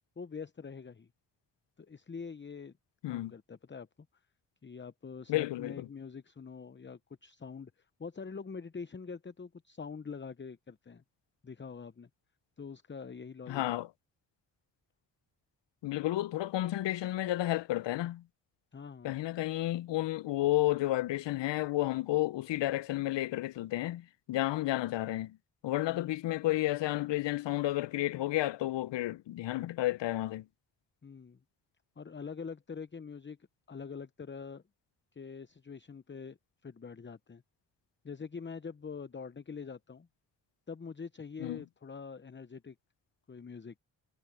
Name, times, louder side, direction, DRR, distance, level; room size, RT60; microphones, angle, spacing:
voice 1, 0.2-1.1 1.8-2.7 3.1-3.9 4.6-7.7 8.0-11.0 11.4-12.1 12.6-13.8 18.7-19.1 25.9-26.1 31.0-31.4 32.0-33.4 33.7-34.6 35.1-36.4 36.6-37.4 38.0-40.1 40.7-42.7 43.3-43.7, left 5 dB, 25° left, 0.8 m, -44 dB
voice 2, 5.3-5.9 13.5-13.9 15.8-18.2 19.0-25.4 25.6-30.4 41.4-41.6, left 16 dB, 75° left, 0.6 m, -31 dB
supercardioid pair, 45°, 43 cm